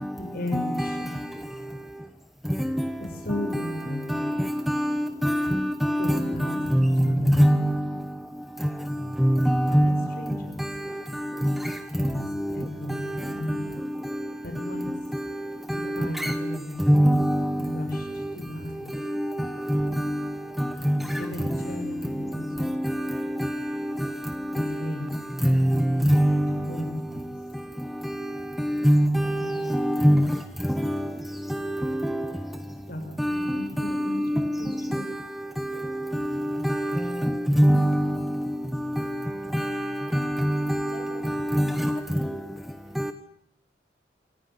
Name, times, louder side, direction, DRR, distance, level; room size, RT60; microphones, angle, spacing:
voice 1, 0.2-1.1 1.4-1.5 3.0-4.3 5.0-5.2 6.0-7.7 9.7-10.6 12.0-12.3 12.5-13.8 14.4-15.1 15.7-16.8 17.6-18.9 21.2-22.8 24.5-25.1 26.5-27.3 29.4-29.6 32.9-35.1 35.7-36.1, left 1 dB, 50° left, 5.7 m, -36 dB
voice 2, 6.8-7.1 7.4-7.6 9.2-10.0 16.2-16.3 16.9-17.4 19.7-19.8 20.9-21.0 25.5-25.6 26.0-26.4 28.8-29.2 29.7-30.2 36.6-36.7 37.6-38.0 39.5-39.6 40.4-40.5 41.5-41.7, equal, ahead, 1.0 m, -19 dB
voice 3, 40.7-42.4 42.8-43.0, left 1 dB, 35° left, 7.4 m, -47 dB
27.0 x 15.0 x 9.7 m
head